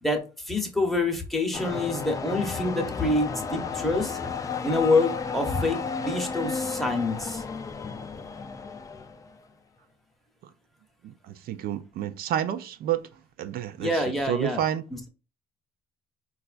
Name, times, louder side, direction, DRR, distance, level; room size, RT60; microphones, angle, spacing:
voice 1, 0.0-4.2 4.6-7.4 13.8-14.6, left 2 dB, ahead, 0.8 m, -26 dB
sound 1, 1.5-9.4, left 5 dB, 20° left, 0.3 m, -33 dB
voice 2, 11.0-13.1 13.4-14.8, right 10 dB, 65° right, 0.4 m, -30 dB
4.0 x 2.3 x 2.4 m
cardioid pair, 110°, 17 cm